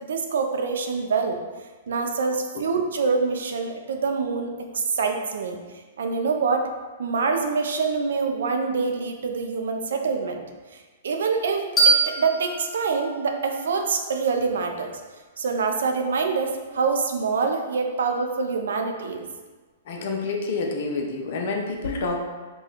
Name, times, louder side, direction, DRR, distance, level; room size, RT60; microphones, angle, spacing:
voice 1, 0.1-1.4 1.9-5.6 6.0-6.7 7.0-10.4 11.0-14.9 15.4-19.3, right 4 dB, 75° right, 4 dB, 0.4 m, -25 dB
sound 1, 11.8-14.6, right 4 dB, 20° left, 0.9 m, -25 dB
voice 2, 19.9-22.2, left 3 dB, 60° left, 1 dB, 0.6 m, -28 dB
2.9 x 2.3 x 4.0 m, 1.3 s
hypercardioid pair, 125°, 0 cm